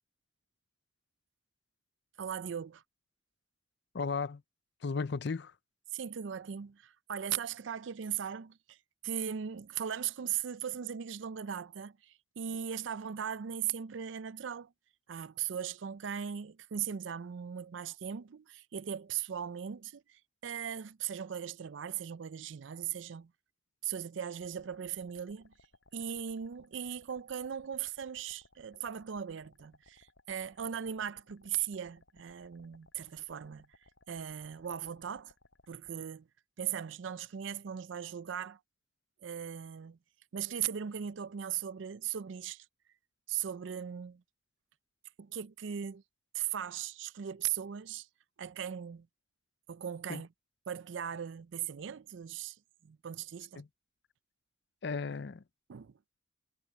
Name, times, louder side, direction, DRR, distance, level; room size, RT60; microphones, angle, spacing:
voice 1, 2.2-2.8 5.9-8.8 9.0-14.7 15.1-23.3 23.8-25.5 25.9-33.7 34.1-35.3 35.7-36.3 36.6-38.6 39.2-40.0 40.3-42.6 43.3-44.2 45.2-46.0 46.3-48.1 48.4-49.1 49.7-50.3 50.7-52.6 52.8-53.6 55.7-55.9, right 9 dB, 75° right, 0.4 m, -38 dB
voice 2, 3.9-4.4 4.8-5.5 50.1-50.2 53.6-53.7 54.8-55.4, left 4 dB, 60° left, 0.6 m, -35 dB
sound 1, 24.4-35.9, left 2 dB, 75° left, 6.5 m, -64 dB
head